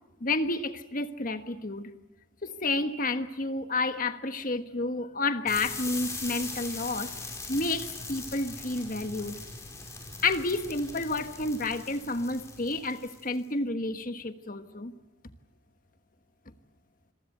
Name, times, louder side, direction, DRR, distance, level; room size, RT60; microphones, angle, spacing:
voice 1, 0.2-1.9 2.4-7.1 7.5-9.4 10.2-14.9, left 2 dB, 45° left, 9 dB, 1.4 m, -30 dB
sound 1, 5.5-13.4, left 3 dB, 15° left, 5.0 m, -40 dB
27.5 x 22.5 x 8.0 m, 0.95 s
head